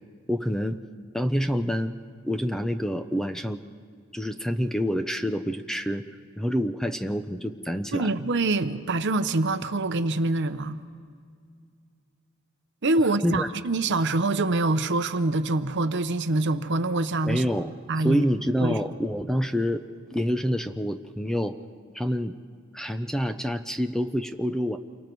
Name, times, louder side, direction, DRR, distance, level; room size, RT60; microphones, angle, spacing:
voice 1, 0.3-0.8 1.1-2.0 2.2-3.6 4.1-6.0 6.4-8.1 13.0-13.5 17.2-17.7 18.0-19.8 20.1-21.6 21.9-22.3 22.7-24.8, equal, ahead, 0.5 m, -27 dB
voice 2, 7.9-10.8 12.8-17.4 17.9-18.2 18.6-18.8, right 2 dB, 55° right, 0.8 m, -25 dB
28.5 x 24.0 x 4.6 m
head